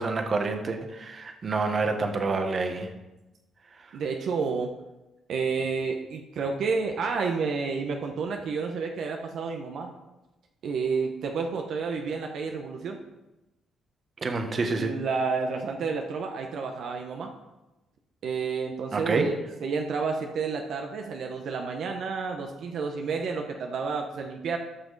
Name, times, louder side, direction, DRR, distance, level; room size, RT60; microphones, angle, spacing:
voice 1, 0.0-2.9 3.8-3.9 14.2-15.0 18.9-19.3, right 3 dB, 40° right, 6 dB, 1.3 m, -28 dB
voice 2, 3.9-4.7 5.3-9.9 10.6-13.0 14.8-17.3 18.2-19.3 19.6-24.6, right 5 dB, 70° right, 3 dB, 0.9 m, -30 dB
13.5 x 6.0 x 4.0 m, 1.0 s
cardioid pair, 90°, 0 cm